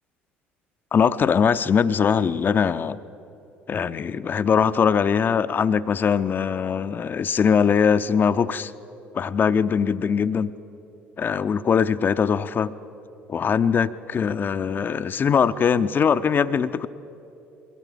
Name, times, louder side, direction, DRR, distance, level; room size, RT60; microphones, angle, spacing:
voice 1, 0.9-3.0 3.7-8.7 9.1-10.5 11.2-12.8 13.3-16.9, left 6 dB, 35° left, 14 dB, 0.6 m, -21 dB
23.0 x 17.0 x 7.3 m, 2.9 s
figure-of-eight pair, 55°, 6 cm